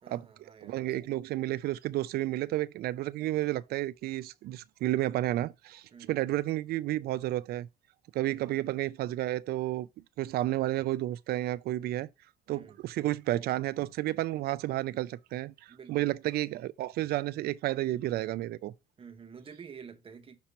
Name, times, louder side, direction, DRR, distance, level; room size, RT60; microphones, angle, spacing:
voice 1, 0.0-1.0 5.9-6.4 8.2-8.6 12.5-12.8 15.7-16.2 19.0-20.4, right 6 dB, 35° right, 1.0 m, -50 dB
voice 2, 0.6-7.7 8.1-9.9 10.2-12.1 12.5-18.7, right 15 dB, 65° right, 0.4 m, -31 dB
6.0 x 2.9 x 5.5 m
cardioid pair, 110°, 17 cm